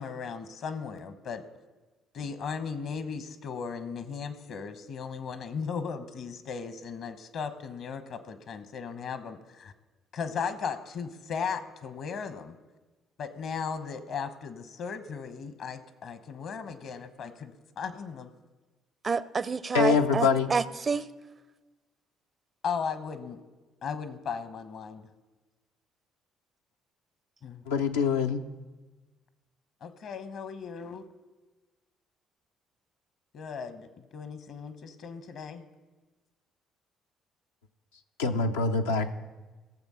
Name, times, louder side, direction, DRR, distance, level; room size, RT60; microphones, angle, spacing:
voice 1, 0.0-1.4 2.1-9.7 10.1-12.6 13.2-18.3 22.6-23.4 23.8-25.1 27.4-27.6 29.8-31.0 33.3-35.7, left 6 dB, 65° left, 11 dB, 1.0 m, -36 dB
voice 2, 19.0-21.1, right 5 dB, 40° right, 17 dB, 0.5 m, -28 dB
voice 3, 19.7-20.5 27.7-28.4 38.2-39.2, left 5 dB, 90° left, 3 dB, 0.5 m, -25 dB
16.0 x 7.1 x 5.6 m, 1.2 s
hypercardioid pair, 55°, 0 cm